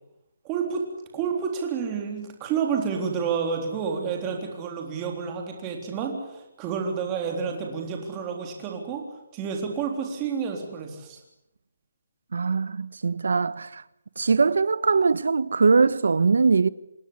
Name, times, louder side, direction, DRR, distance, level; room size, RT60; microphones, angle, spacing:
voice 1, 0.4-0.8 1.1-9.0 9.3-11.2, right 6 dB, 15° right, 3.7 m, -29 dB
voice 2, 12.3-13.8 14.2-16.7, right 4 dB, 75° right, 1.2 m, -21 dB
27.5 x 20.5 x 9.8 m
hypercardioid pair, 180°, 0 cm